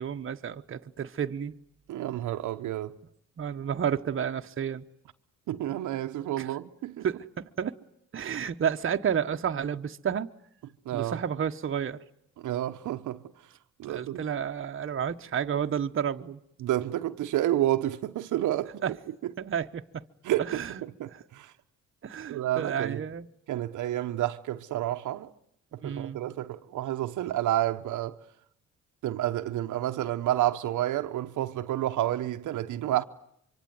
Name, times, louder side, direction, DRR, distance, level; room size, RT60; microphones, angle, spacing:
voice 1, 0.0-1.5 3.4-4.8 6.4-6.6 7.0-7.7 8.1-10.3 10.9-12.0 13.9-16.4 18.8-18.9 19.4-20.0 20.4-20.8 21.1-21.2 22.0-23.3 25.8-26.2, right 8 dB, 45° right, 1.2 m, -31 dB
voice 2, 1.9-2.9 5.5-7.0 10.9-11.2 12.4-13.2 13.8-14.2 16.6-18.8 20.2-20.6 21.0-21.5 22.3-23.0 23.5-25.3 25.8-28.2 29.0-33.0, right 13 dB, 80° right, 1.1 m, -29 dB
25.0 x 24.5 x 9.5 m
cardioid pair, 90°, 30 cm